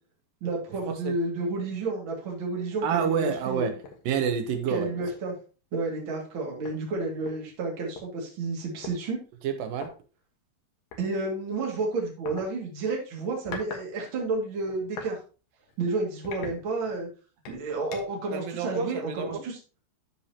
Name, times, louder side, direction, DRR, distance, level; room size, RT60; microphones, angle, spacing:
voice 1, 0.4-3.7 4.7-5.3 5.7-9.2 11.0-15.2 15.8-17.1 17.5-19.6, right 3 dB, 40° right, -1 dB, 2.3 m, -31 dB
voice 2, 2.8-3.8 4.1-4.9 9.4-9.9 18.3-19.4, right 7 dB, 70° right, 7 dB, 2.4 m, -28 dB
sound 1, 3.8-4.0 4.5-4.6 5.0-5.3 6.3-6.4 6.6-8.1 8.8-9.0 9.7-9.9 10.9-11.1 12.3-12.5 13.2-13.9 14.2-15.1 15.6-15.8 16.2-17.0 17.5-18.2, left 5 dB, 65° left, 2.9 m, -42 dB
12.5 x 4.7 x 2.8 m, 0.34 s
omnidirectional pair, 4.5 m